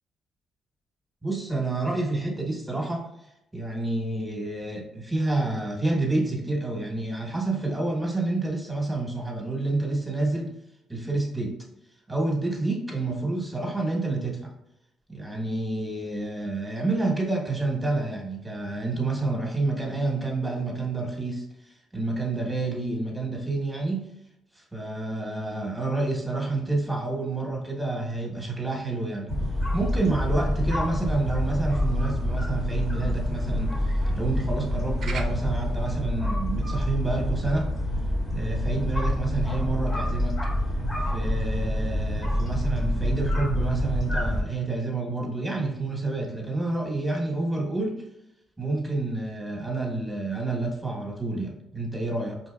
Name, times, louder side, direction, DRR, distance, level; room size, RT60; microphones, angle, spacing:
voice 1, 1.2-3.1 3.5-10.5 10.9-11.6 12.1-14.5 15.1-24.1 24.5-29.3 29.7-37.7 38.3-40.4 41.1-48.0 48.6-52.4, right 2 dB, 10° right, 0 dB, 1.2 m, -29 dB
sound 1, 29.3-44.4, left 1 dB, 45° left, 1.4 m, -27 dB
sound 2, 29.7-36.0, right 5 dB, 60° right, 0.4 m, -46 dB
4.2 x 3.1 x 2.3 m, 0.82 s
supercardioid pair, 70°, 0 cm